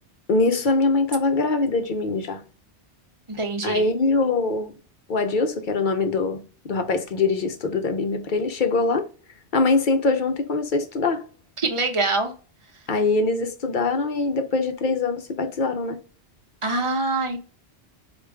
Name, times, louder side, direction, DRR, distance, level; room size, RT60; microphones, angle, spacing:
voice 1, 0.3-2.4 3.6-4.7 5.1-9.1 9.5-11.2 12.9-16.0, left 3 dB, 50° left, 0.7 m, -23 dB
voice 2, 3.3-3.8 11.6-12.3 16.6-17.4, right 3 dB, 30° right, 0.7 m, -24 dB
4.8 x 2.5 x 3.3 m
omnidirectional pair, 1.2 m